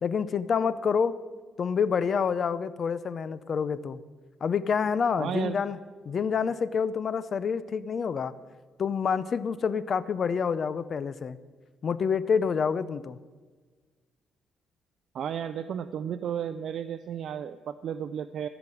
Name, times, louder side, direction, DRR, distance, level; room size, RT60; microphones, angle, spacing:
voice 1, 0.0-1.1 1.6-4.0 4.4-5.8 6.1-8.3 8.8-11.4 11.8-13.2, left 6 dB, 50° left, 15 dB, 0.6 m, -27 dB
voice 2, 5.2-5.6 15.1-18.5, right 8 dB, 65° right, 11 dB, 0.4 m, -33 dB
14.5 x 6.0 x 9.0 m, 1.4 s
cardioid pair, 90°, 0 cm